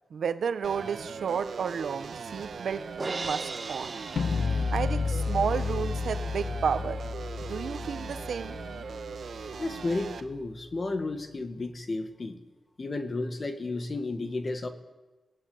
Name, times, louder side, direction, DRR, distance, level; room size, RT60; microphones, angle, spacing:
voice 1, 0.1-4.0 4.7-7.0 7.4-8.6, right 6 dB, 85° right, 10 dB, 1.3 m, -32 dB
sound 1, 0.6-10.2, right 5 dB, 70° right, 1.5 m, -40 dB
Crash cymbal, 3.0-5.3, right 3 dB, 35° right, 0.8 m, -37 dB
sound 2, 4.2-10.2, left 4 dB, 65° left, 1.0 m, -32 dB
voice 2, 9.6-12.4 12.8-14.7, left 2 dB, 35° left, 8 dB, 2.1 m, -32 dB
29.0 x 17.0 x 8.7 m, 1.2 s
wide cardioid pair, 140°, 0 cm